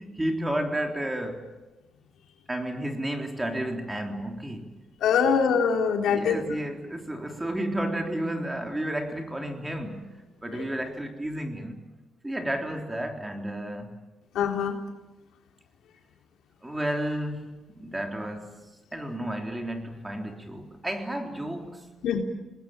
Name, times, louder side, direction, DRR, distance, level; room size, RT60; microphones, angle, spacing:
voice 1, 0.0-1.5 2.5-4.7 5.2-5.4 6.1-11.9 12.2-13.9 16.6-18.6 18.9-21.9, right 1 dB, 10° right, 3.6 m, -32 dB
voice 2, 5.0-6.5 10.5-10.6 14.4-14.7 22.0-22.2, left 6 dB, 85° left, 3.6 m, -23 dB
27.0 x 20.0 x 8.9 m
cardioid pair, 105°, 0 cm